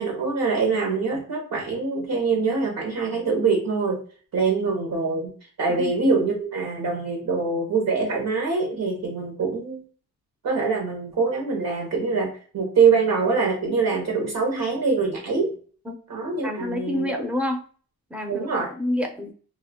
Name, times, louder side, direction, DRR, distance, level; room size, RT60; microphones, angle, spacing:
voice 1, 0.0-4.0 4.3-9.8 10.4-15.5 16.1-17.1 18.3-18.7, right 4 dB, 70° right, 0 dB, 0.8 m, -24 dB
voice 2, 16.4-17.6 18.1-19.3, left 1 dB, 5° right, 3 dB, 0.6 m, -28 dB
2.2 x 2.1 x 3.6 m, 0.42 s
cardioid pair, 75°, 35 cm